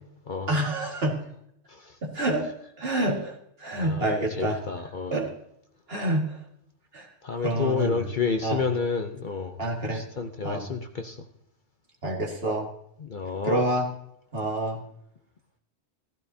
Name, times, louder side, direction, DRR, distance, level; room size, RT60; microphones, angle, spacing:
voice 1, 0.5-1.2 2.0-2.5 2.8-4.6 5.1-5.3 5.9-6.4 6.9-7.1 7.4-8.0 8.4-8.6 9.6-10.0 10.4-10.7 12.0-12.7 13.4-13.9 14.3-14.8, right 1 dB, 55° right, 0 dB, 2.2 m, -27 dB
voice 2, 3.8-5.2 7.2-9.6 9.9-11.2 13.0-13.6, left 5 dB, 45° left, 6 dB, 0.8 m, -30 dB
15.0 x 14.5 x 2.8 m, 0.73 s
omnidirectional pair, 1.2 m